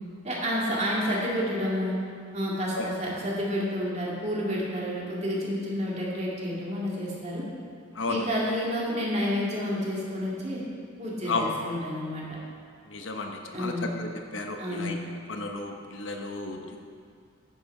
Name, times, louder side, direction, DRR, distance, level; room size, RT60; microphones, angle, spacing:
voice 1, 0.2-2.0 2.3-7.4 8.1-10.6 11.0-12.3 13.5-13.9 14.6-15.0, equal, 35° right, -5 dB, 2.3 m, -30 dB
voice 2, 12.9-14.9 15.3-16.8, left 3 dB, 75° left, 3 dB, 1.0 m, -33 dB
10.0 x 7.9 x 4.8 m, 2.3 s
head